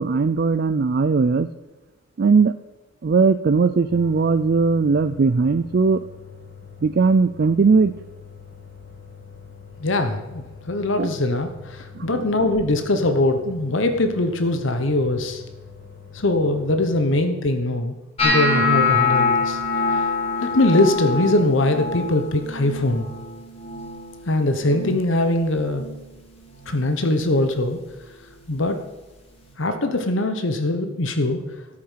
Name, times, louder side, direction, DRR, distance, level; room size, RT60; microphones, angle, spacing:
voice 1, 0.0-1.5 2.2-2.5 3.0-6.0 6.8-7.9 11.0-11.1 12.0-12.3, right 4 dB, 50° right, 11 dB, 0.4 m, -19 dB
sound 1, 3.9-17.1, left 6 dB, 45° left, 2.4 m, -44 dB
voice 2, 9.8-15.4 16.1-17.9 18.2-19.6 19.9-20.0 20.4-23.1 24.3-25.9 26.7-27.8 28.5-28.8 29.6-31.4, left 2 dB, 65° left, 7 dB, 1.1 m, -22 dB
sound 2, 18.2-24.3 24.5-25.1 25.4-26.0 26.6-26.8 28.5-28.6, left 3 dB, 30° left, 2.6 m, -24 dB
13.5 x 8.7 x 5.7 m, 1.2 s
head